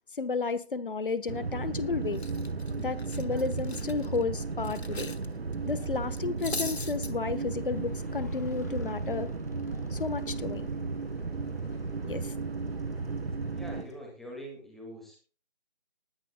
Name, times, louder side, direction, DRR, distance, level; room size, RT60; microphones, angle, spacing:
voice 1, 0.2-2.2 2.8-5.1 5.6-9.3 9.9-10.7 12.0-12.3, left 4 dB, 55° left, 15 dB, 1.2 m, -32 dB
sound 1, 1.3-13.8, right 4 dB, 70° right, 1.2 m, -34 dB
Motorcycle, 1.4-14.0, left 3 dB, 15° left, 0.8 m, -51 dB
Cutlery silverware, 1.5-1.8 2.1-5.3 5.5-5.7 6.1-7.1, left 3 dB, 75° left, 1.2 m, -39 dB
voice 2, 13.5-15.2, equal, ahead, 0 dB, 2.0 m, -44 dB
20.0 x 10.5 x 2.3 m, 0.38 s
figure-of-eight pair, 150°, 32 cm